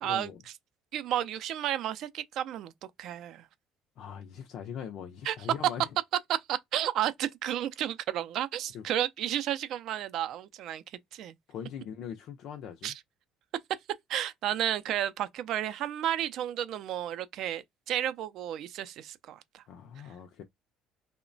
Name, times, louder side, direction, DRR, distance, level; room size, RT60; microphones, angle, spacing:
voice 1, 0.0-0.4 4.0-5.9 8.7-8.8 11.5-13.0 19.7-20.4, left 8 dB, 65° left, 0.4 m, -41 dB
voice 2, 0.9-2.7 3.0-3.4 5.3-5.4 6.3-10.8 11.1-11.3 12.8-12.9 14.1-19.6, right 11 dB, 65° right, 0.4 m, -32 dB
2.9 x 2.1 x 2.5 m
cardioid pair, 115°, 0 cm